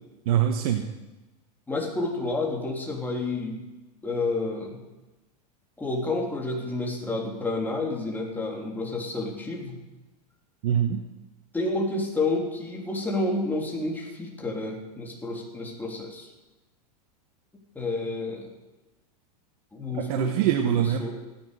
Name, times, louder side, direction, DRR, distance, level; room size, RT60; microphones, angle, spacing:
voice 1, 0.2-0.9 10.6-11.0 19.9-21.1, right 10 dB, 65° right, 5 dB, 1.3 m, -24 dB
voice 2, 1.7-3.6 4.0-4.8 5.8-9.8 11.5-16.3 17.8-18.5 19.7-21.1, left 2 dB, 10° left, -1 dB, 3.5 m, -30 dB
16.0 x 10.5 x 6.8 m, 1.1 s
supercardioid pair, 125°, 21 cm